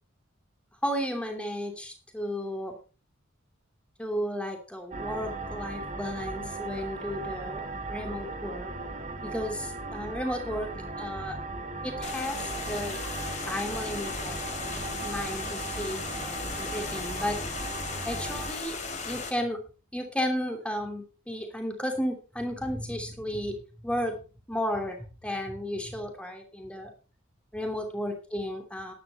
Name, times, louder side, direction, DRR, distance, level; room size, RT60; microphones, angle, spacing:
voice 1, 0.8-2.8 4.0-7.6 7.9-8.7 9.2-11.4 11.8-13.0 13.5-17.6 18.0-18.8 19.0-19.6 19.9-24.2 24.5-26.9 27.5-28.9, equal, 5° left, 4 dB, 2.9 m, -33 dB
sound 1, 4.9-18.5, right 3 dB, 35° right, 1.6 m, -37 dB
sound 2, 12.0-19.3, left 4 dB, 35° left, 3.2 m, -36 dB
13.0 x 11.0 x 4.2 m, 0.34 s
head